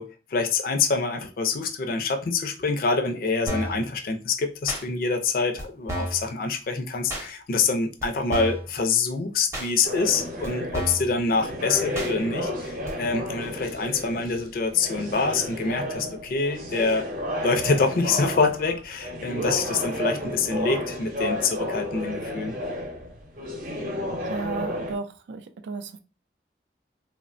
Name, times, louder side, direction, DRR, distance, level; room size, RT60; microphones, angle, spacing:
voice 1, 0.0-17.1 17.4-22.5, left 4 dB, 55° left, 0.4 m, -26 dB
sound 1, 3.5-3.8 4.7-4.8 5.6-5.7 5.9-6.2 7.1-7.3 8.0-8.1 8.3-8.7 9.5-9.7 10.4-10.5 10.7-11.1 11.9-12.1 12.9-13.0, right 1 dB, 15° right, 0.6 m, -31 dB
sound 2, 9.8-24.9, left 1 dB, 50° right, 0.7 m, -32 dB
voice 2, 24.2-26.0, right 4 dB, 85° right, 0.4 m, -34 dB
3.0 x 2.1 x 2.4 m
head